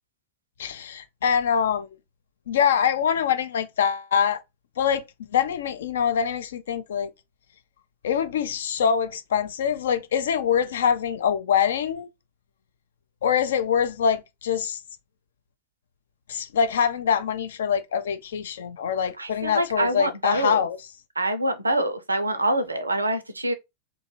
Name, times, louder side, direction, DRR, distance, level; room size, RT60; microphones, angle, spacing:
voice 1, 0.6-1.9 2.5-4.4 4.8-5.0 5.3-7.1 8.0-12.1 13.2-14.8 16.3-20.8, left 7 dB, 60° left, 0.4 m, -24 dB
voice 2, 19.2-20.7 21.2-23.5, right 1 dB, 80° right, 0.5 m, -25 dB
2.7 x 2.2 x 2.9 m
figure-of-eight pair, 90°, 0 cm